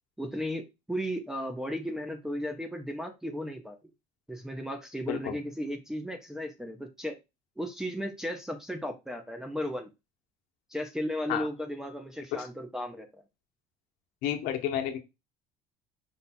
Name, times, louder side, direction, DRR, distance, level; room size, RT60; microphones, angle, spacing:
voice 1, 0.2-3.8 4.3-7.2 7.6-9.9 10.7-13.2, equal, 5° right, 5 dB, 0.5 m, -35 dB
voice 2, 14.2-15.0, left 10 dB, 70° left, 4 dB, 1.0 m, -31 dB
5.3 x 2.3 x 4.2 m, 0.24 s
cardioid pair, 170°, 15 cm